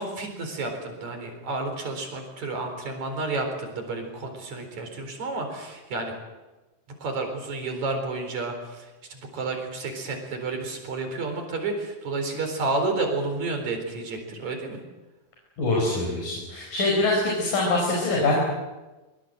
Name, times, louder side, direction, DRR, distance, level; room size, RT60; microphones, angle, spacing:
voice 1, 0.0-6.1 7.0-14.8, right 3 dB, 55° right, 5 dB, 5.3 m, -31 dB
voice 2, 15.6-18.4, left 2 dB, 70° left, -2 dB, 6.6 m, -24 dB
23.5 x 23.5 x 7.8 m, 1.1 s
omnidirectional pair, 3.9 m